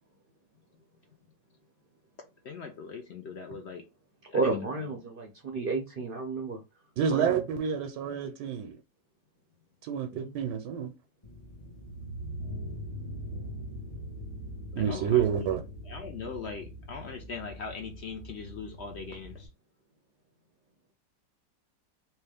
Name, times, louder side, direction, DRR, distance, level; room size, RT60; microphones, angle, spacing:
voice 1, 2.4-3.8 4.3-4.6 14.8-15.2 15.9-19.5, left 5 dB, 65° left, 0.6 m, -40 dB
voice 2, 4.3-6.6 7.1-7.4 10.1-10.3, right 3 dB, 55° right, 0.6 m, -31 dB
voice 3, 7.0-8.8 9.8-10.9 14.7-15.6, right 8 dB, 80° right, 1.2 m, -28 dB
sound 1, 11.2-19.5, equal, 25° left, 0.7 m, -42 dB
3.3 x 2.9 x 3.4 m
omnidirectional pair, 1.8 m